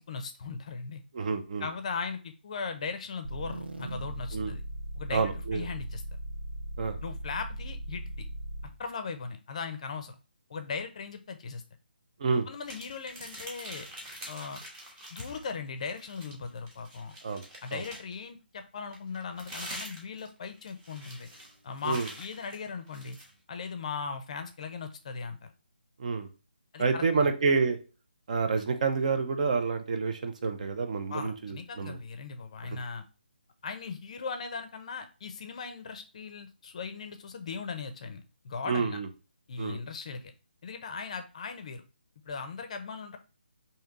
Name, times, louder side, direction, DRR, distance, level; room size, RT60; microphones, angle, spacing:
voice 1, 0.0-1.0 1.6-4.6 5.0-6.0 7.0-8.3 8.8-10.2 10.5-11.6 12.5-13.9 14.3-14.6 15.1-17.1 17.6-21.3 21.6-23.2 23.5-25.5 26.7-27.3 31.1-33.0 33.6-39.0 39.5-40.3 40.6-41.8 42.3-43.2, left 5 dB, 40° left, 8 dB, 0.5 m, -38 dB
voice 2, 1.1-1.7 4.3-4.5 5.1-5.6 6.8-7.0 12.2-12.5 17.2-17.4 17.7-17.8 21.8-22.1 26.0-26.3 26.8-27.8 28.3-32.0 38.7-39.1 39.6-39.8, right 4 dB, 45° right, 7 dB, 0.5 m, -28 dB
sound 1, 3.2-8.9, right 1 dB, 85° right, 0.6 m, -38 dB
sound 2, 12.6-15.5 15.9-18.2 18.9-23.3, right 1 dB, 15° right, 0.8 m, -45 dB
3.2 x 2.7 x 3.7 m, 0.33 s
hypercardioid pair, 160°, 6 cm